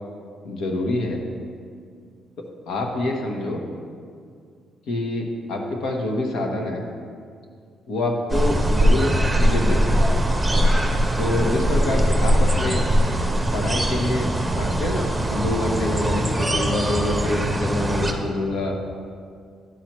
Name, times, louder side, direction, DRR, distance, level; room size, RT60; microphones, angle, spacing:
voice 1, 0.4-1.2 2.7-3.6 4.9-6.8 7.9-9.9 11.2-12.8 13.5-18.8, left 2 dB, 80° left, 2 dB, 1.1 m, -26 dB
sound 1, 8.3-18.1, equal, 5° right, 0.9 m, -21 dB
11.5 x 5.8 x 3.1 m, 2.2 s
cardioid pair, 90°, 0 cm